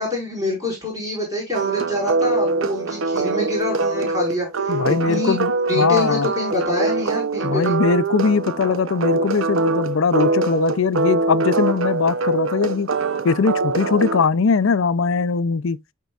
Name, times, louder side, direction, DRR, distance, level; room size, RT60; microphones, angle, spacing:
voice 1, 0.0-4.8 5.0-5.4 5.7-7.7, left 2 dB, 15° right, 5.4 m, -26 dB
sound 1, 1.5-14.2, right 3 dB, 70° right, 0.8 m, -23 dB
voice 2, 4.7-6.3 7.4-12.9 13.2-15.8, left 5 dB, 70° left, 0.5 m, -20 dB
13.5 x 4.5 x 2.4 m
head